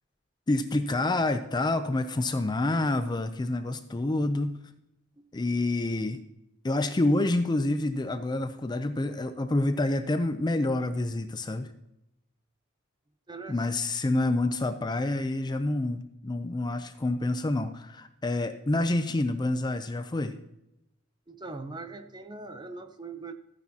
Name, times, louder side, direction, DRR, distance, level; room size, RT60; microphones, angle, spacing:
voice 1, 0.5-4.6 5.3-6.2 6.6-11.7 13.5-20.4, left 2 dB, 20° left, 9 dB, 0.5 m, -28 dB
voice 2, 13.3-13.7 21.3-23.3, right 3 dB, 20° right, 8 dB, 0.7 m, -41 dB
13.5 x 9.7 x 2.8 m, 0.86 s
head